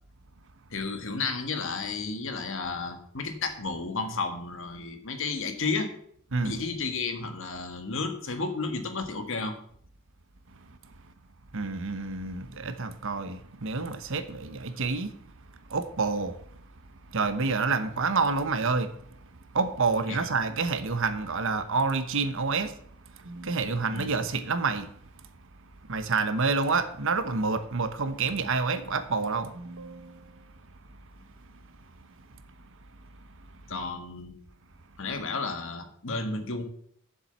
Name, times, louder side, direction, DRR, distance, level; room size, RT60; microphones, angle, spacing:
voice 1, 0.7-5.9 6.4-9.5 20.1-20.3 23.9-24.1 33.7-34.4 35.0-36.6, left 4 dB, 65° left, 1.6 m, -32 dB
voice 2, 11.5-15.2 15.7-16.4 17.1-18.9 19.5-22.7 23.1-24.9 25.9-30.4, right 4 dB, 65° right, 1.0 m, -28 dB
7.3 x 7.2 x 8.1 m
head